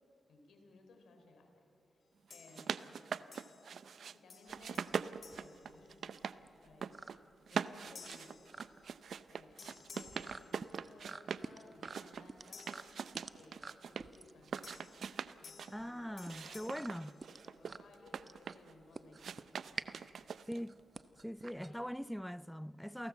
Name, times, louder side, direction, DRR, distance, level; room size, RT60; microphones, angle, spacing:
voice 1, 0.3-1.6 1.9-2.0 2.3-3.0 4.1-4.9 5.3-6.2 6.6-7.0 7.5-8.5 9.3-12.7 13.3-14.6 15.4-17.1 17.4-19.6 21.6-21.9, left 3 dB, 85° left, 3.8 m, -61 dB
sound 1, 2.3-3.0 3.3-4.0 4.3-6.5 7.0-7.2 7.9-9.3 9.6-11.2 12.5-13.7 14.6-17.9, left 5 dB, 65° left, 0.8 m, -58 dB
sound 2, 2.3-4.2 4.5-6.4 6.7-7.2 7.5-11.5 11.8-14.1 14.4-15.7 16.2-18.7 19.2-20.7, right 7 dB, 75° right, 0.6 m, -42 dB
sound 3, 4.5-22.2, right 3 dB, 40° right, 0.9 m, -51 dB
voice 2, 15.7-17.2 20.5-20.8 21.2-23.1, equal, ahead, 0.5 m, -42 dB
28.5 x 17.5 x 7.3 m
cardioid pair, 65°, 0 cm